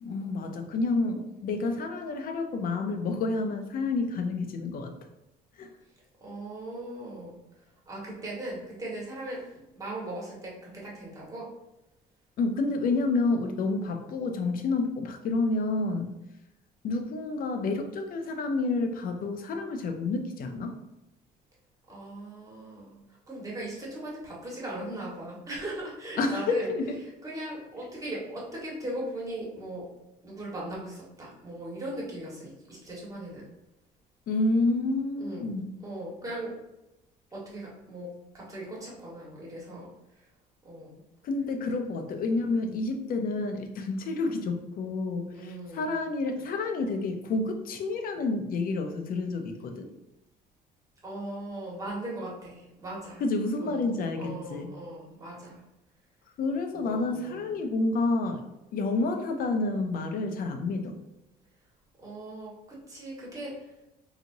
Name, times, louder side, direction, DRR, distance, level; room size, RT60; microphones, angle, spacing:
voice 1, 0.0-4.9 5.6-5.7 12.4-16.1 16.8-20.7 26.2-26.9 34.3-35.7 41.2-49.9 53.2-54.7 56.4-58.4 58.7-61.0, left 3 dB, 60° left, 6 dB, 0.6 m, -29 dB
voice 2, 6.2-7.3 7.9-11.5 21.9-23.0 23.2-26.7 27.2-29.8 30.2-33.4 35.2-35.5 35.8-36.5 37.3-39.9 40.6-41.0 41.7-41.8 45.3-45.9 51.0-53.2 53.6-53.9 54.2-55.6 56.7-57.5 62.0-63.5, right 1 dB, 20° right, -5 dB, 1.5 m, -38 dB
4.1 x 2.9 x 2.6 m, 0.93 s
cardioid pair, 110°, 17 cm